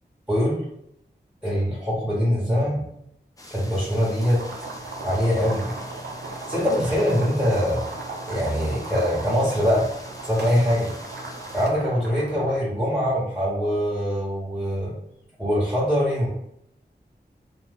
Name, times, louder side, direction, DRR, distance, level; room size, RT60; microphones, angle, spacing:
voice 1, 0.3-0.6 1.4-2.9 3.5-4.4 5.0-5.7 6.3-7.8 8.3-9.9 10.2-10.9 11.5-14.9 15.4-16.3, equal, 5° right, -9 dB, 1.1 m, -23 dB
sound 1, 3.4-11.7, left 1 dB, 20° left, 0.5 m, -44 dB
sound 2, 4.2-12.5, right 2 dB, 65° right, 0.6 m, -37 dB
2.5 x 2.2 x 3.5 m, 0.74 s
wide cardioid pair, 50°, 19 cm